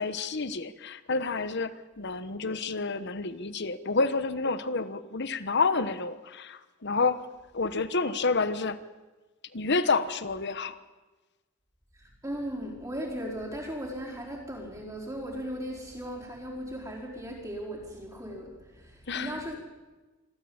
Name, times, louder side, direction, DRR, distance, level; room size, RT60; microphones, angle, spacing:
voice 1, 0.0-7.2 7.5-8.8 9.5-10.8 19.1-19.4, left 4 dB, 50° left, 13 dB, 1.1 m, -29 dB
voice 2, 11.9-19.6, equal, 15° right, -4 dB, 4.5 m, -37 dB
26.0 x 14.0 x 8.8 m, 1.2 s
head